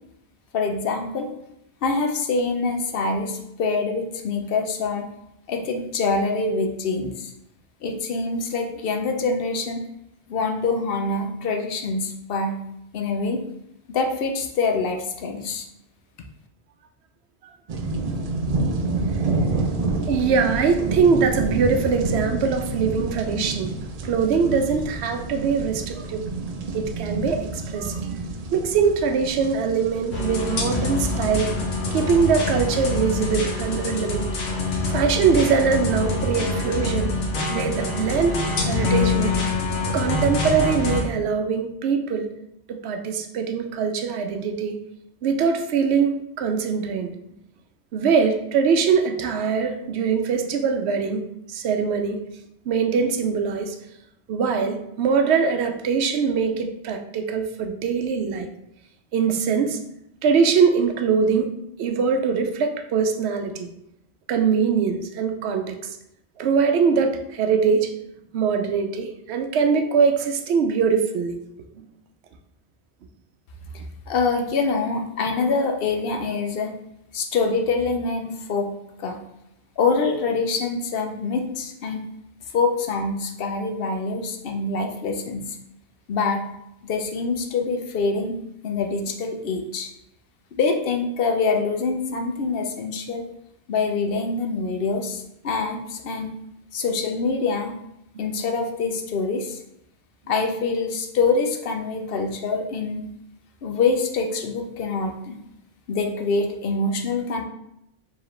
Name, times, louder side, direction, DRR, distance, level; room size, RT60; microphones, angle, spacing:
voice 1, 0.5-1.3 1.8-5.1 5.5-7.3 7.8-9.8 10.3-12.6 12.9-13.4 13.9-15.6 74.1-76.7 77.1-78.7 79.0-79.2 79.8-82.0 82.5-85.6 86.1-86.4 86.8-88.3 88.6-89.9 90.6-93.2 93.7-96.3 96.7-97.7 98.2-99.6 100.3-103.1 103.6-105.4 105.9-107.4, left 4 dB, 65° left, 3 dB, 0.8 m, -25 dB
sound 1, 17.7-33.9, right 3 dB, 50° right, 0.5 m, -29 dB
voice 2, 20.1-23.7 24.0-26.2 26.7-28.1 28.5-31.6 31.9-34.3 34.9-37.2 37.5-39.3 39.9-42.3 42.7-44.8 45.2-47.2 47.9-51.2 51.5-52.2 52.7-53.8 54.3-58.5 59.1-59.8 60.2-61.5 61.8-63.7 64.3-66.0 66.4-67.9 68.3-71.4, right 6 dB, 85° right, 6 dB, 0.8 m, -22 dB
sound 2, 30.1-41.0, left 3 dB, 85° left, 1.1 m, -25 dB
4.7 x 3.0 x 3.1 m, 0.80 s
omnidirectional pair, 1.1 m